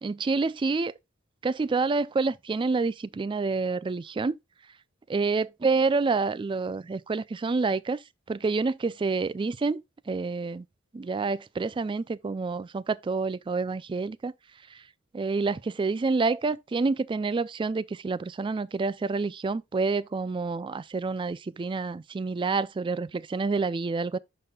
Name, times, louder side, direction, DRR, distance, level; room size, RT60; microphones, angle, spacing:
voice 1, 0.0-0.9 1.4-4.4 5.1-8.0 8.3-9.8 10.1-10.6 10.9-14.3 15.1-24.2, right 4 dB, 25° right, 0.3 m, -28 dB
12.0 x 4.2 x 2.3 m
head